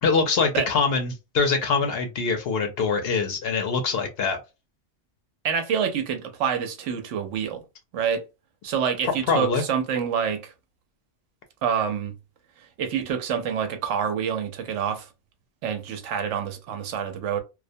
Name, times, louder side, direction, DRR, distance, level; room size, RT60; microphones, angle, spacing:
voice 1, 0.0-4.4 9.3-9.6, left 4 dB, 65° left, 0.7 m, -24 dB
voice 2, 5.4-7.6 7.9-8.2 8.6-10.5 11.6-12.1 12.8-15.1 15.6-17.4, right 7 dB, 85° right, 0.9 m, -27 dB
2.3 x 2.1 x 2.6 m
omnidirectional pair, 1.2 m